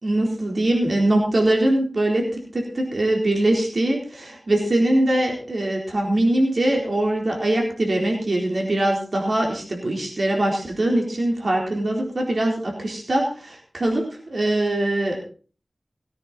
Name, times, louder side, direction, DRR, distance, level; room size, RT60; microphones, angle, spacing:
voice 1, 0.0-15.3, right 1 dB, 70° right, 0 dB, 4.1 m, -22 dB
18.5 x 9.7 x 4.3 m, 0.39 s
wide cardioid pair, 65°, 0 cm